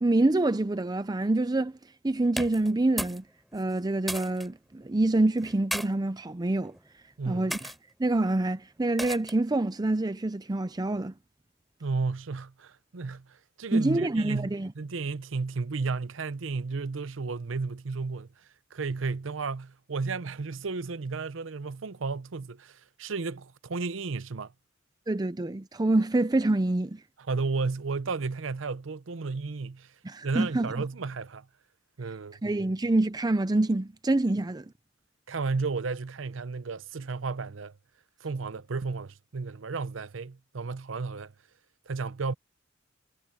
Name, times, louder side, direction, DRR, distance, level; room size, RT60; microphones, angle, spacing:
voice 1, 0.0-1.8 2.0-3.2 3.5-6.7 7.3-7.6 8.0-11.1 13.7-14.7 25.1-27.0 30.0-30.8 32.4-34.7, right 2 dB, 20° right, 0.5 m, -26 dB
sound 1, 2.3-3.2 3.5-4.5 5.4-5.9 6.6-6.9 7.5-7.8 9.0-9.5, equal, ahead, 3.4 m, -35 dB
voice 2, 7.2-7.5 11.8-18.3 18.7-24.5 27.3-29.9 30.2-31.5 32.0-32.4 35.3-37.7 38.2-41.3 41.9-42.3, right 4 dB, 80° right, 0.7 m, -33 dB
head